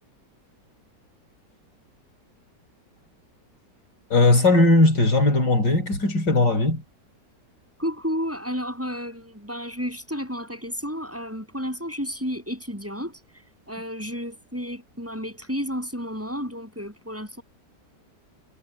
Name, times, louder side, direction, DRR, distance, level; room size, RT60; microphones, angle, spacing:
voice 1, 4.1-6.8, left 2 dB, 85° left, 5.8 m, -18 dB
voice 2, 7.8-13.2 13.7-17.4, equal, 5° right, 8.1 m, -31 dB
omnidirectional pair, 1.8 m